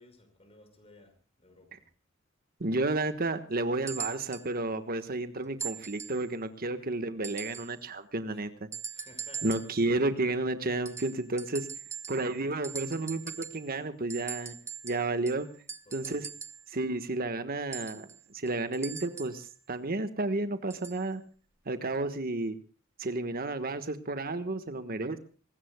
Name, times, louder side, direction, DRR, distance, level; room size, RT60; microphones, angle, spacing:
voice 1, 0.0-1.9 5.4-5.8 6.8-6.9 8.2-8.5 8.9-9.5 15.9-16.3, left 2 dB, 30° left, 7 dB, 5.8 m, -57 dB
voice 2, 2.6-8.5 9.4-11.7 12.1-14.6 14.8-15.5 15.9-16.3 16.7-21.2 21.6-22.6 23.0-25.2, right 2 dB, 50° right, 10 dB, 1.4 m, -31 dB
sound 1, 3.9-4.5 5.6-6.3 7.2-7.8 8.7-9.8 10.8-12.4 12.6-13.7 14.1-16.7 17.7-19.4 20.7-21.0 21.9-22.0, right 7 dB, 15° right, 1.0 m, -41 dB
24.5 x 20.0 x 2.3 m, 0.39 s
head